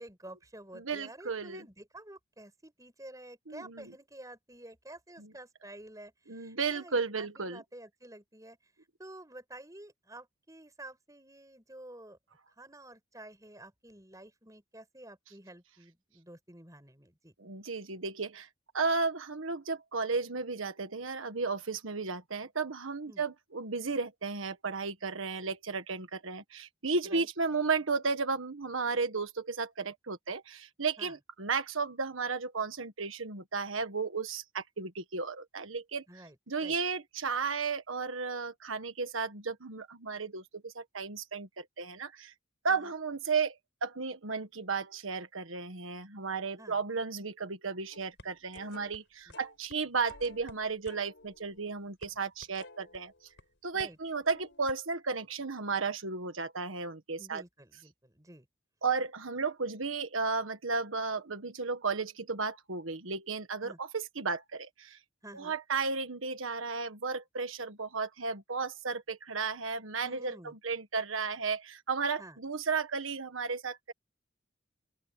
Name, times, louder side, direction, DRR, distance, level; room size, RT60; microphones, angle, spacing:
voice 1, 0.0-8.6 9.0-12.2 12.6-17.3 23.1-23.2 27.0-27.3 31.0-31.1 36.1-36.8 42.7-42.9 46.6-46.8 49.3-49.4 53.7-54.0 57.2-58.5 63.6-63.8 65.2-65.6 70.0-70.5 72.2-72.4, right 1 dB, 15° right, 6.7 m, -50 dB
voice 2, 0.7-1.7 3.5-3.9 5.2-5.3 6.3-7.6 17.4-18.5 18.7-36.0 36.5-42.3 42.6-53.1 53.6-57.4 58.8-65.0 65.3-73.9, right 4 dB, 85° right, 1.5 m, -34 dB
sound 1, 47.9-49.0 49.3-49.8 50.1-53.4 53.8-54.0 54.3-54.7, left 2 dB, 65° left, 5.7 m, -53 dB
open air
head